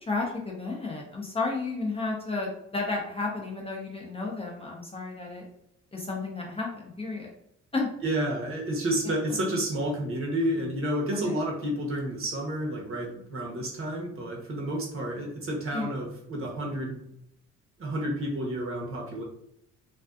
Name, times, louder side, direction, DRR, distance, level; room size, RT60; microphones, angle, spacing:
voice 1, 0.0-5.5 5.9-7.3 7.7-8.0 11.2-11.4 15.7-16.0, left 3 dB, 20° left, -2 dB, 0.5 m, -32 dB
voice 2, 8.0-17.0 17.8-19.2, right 1 dB, 45° right, -2 dB, 0.9 m, -30 dB
2.5 x 2.3 x 2.3 m, 0.78 s
cardioid pair, 90°, 30 cm